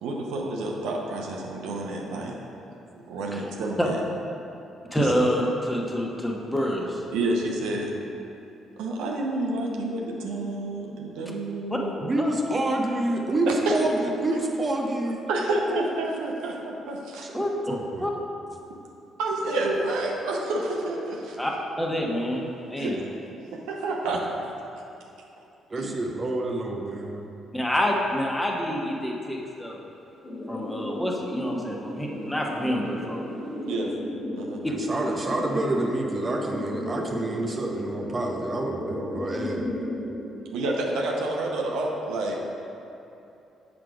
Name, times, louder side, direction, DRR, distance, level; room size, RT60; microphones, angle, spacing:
voice 1, 0.0-2.3 3.1-4.0 5.0-5.1 7.1-7.9 8.8-11.9 13.5-13.7 15.3-17.3 19.2-21.4 22.8-23.0 23.5-24.2 25.8-26.0 33.7-33.9 34.3-34.6 40.5-42.4, right 2 dB, 65° right, -1 dB, 0.8 m, -29 dB
voice 2, 4.9-7.0 11.7-11.8 12.2-12.3 17.3-17.5 18.0-18.1 21.4-21.5 21.8-23.0 27.5-29.8 30.5-33.2, equal, 10° left, -1 dB, 1.2 m, -27 dB
voice 3, 12.0-15.2 17.2-18.1 25.7-27.2 34.7-39.7, right 2 dB, 35° right, 0 dB, 0.8 m, -28 dB
sound 1, 30.2-40.2, left 1 dB, 35° left, 1.6 m, -34 dB
7.4 x 4.9 x 4.8 m, 2.8 s
figure-of-eight pair, 45°, 0 cm